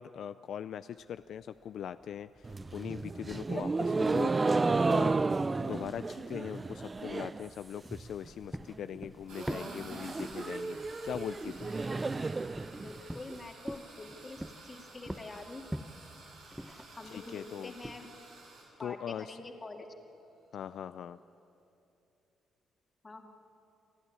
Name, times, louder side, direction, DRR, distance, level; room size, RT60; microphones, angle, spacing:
voice 1, 0.0-4.5 4.8-5.2 5.6-10.8 11.0-11.7 17.0-17.7 18.8-19.4 20.5-21.2, left 9 dB, 70° left, 12 dB, 0.4 m, -41 dB
sound 1, 1.0-18.0, equal, 5° right, 0.8 m, -47 dB
sound 2, 2.4-7.5 7.8-8.3 8.6-8.7 8.9-9.0 9.3-13.3, right 3 dB, 25° right, 0.4 m, -32 dB
sound 3, 9.3-18.7, right 3 dB, 90° right, 6.5 m, -52 dB
voice 2, 12.7-15.6 17.0-18.1 18.8-19.9 23.0-23.3, left 2 dB, 25° left, 3 dB, 2.2 m, -46 dB
29.0 x 11.0 x 9.9 m, 2.8 s
cardioid pair, 90°, 0 cm